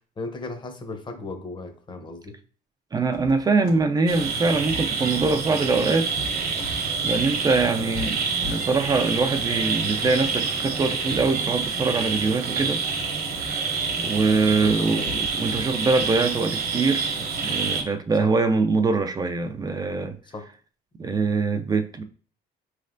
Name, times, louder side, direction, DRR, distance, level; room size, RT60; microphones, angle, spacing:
voice 1, 0.2-2.4 7.7-7.9 14.5-15.1 20.3-20.4, left 3 dB, 25° left, 0.8 m, -36 dB
voice 2, 2.9-6.1 7.0-12.8 14.0-20.2 21.0-22.0, right 4 dB, 25° right, 0.4 m, -23 dB
sound 1, 3.0-16.1, left 4 dB, 65° left, 1.3 m, -42 dB
sound 2, 4.1-17.8, right 5 dB, 65° right, 1.0 m, -27 dB
4.9 x 3.3 x 2.5 m
cardioid pair, 110°, 17 cm